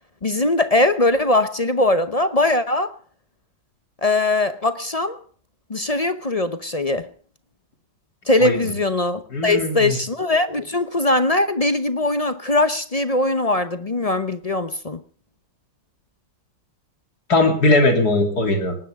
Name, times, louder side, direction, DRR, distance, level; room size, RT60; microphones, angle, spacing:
voice 1, 0.2-2.9 4.0-5.2 5.7-7.1 8.3-15.0, left 2 dB, 35° left, 0.5 m, -21 dB
voice 2, 9.3-10.0 17.3-18.8, left 2 dB, 60° left, 3.7 m, -19 dB
20.0 x 18.5 x 3.6 m
omnidirectional pair, 1.9 m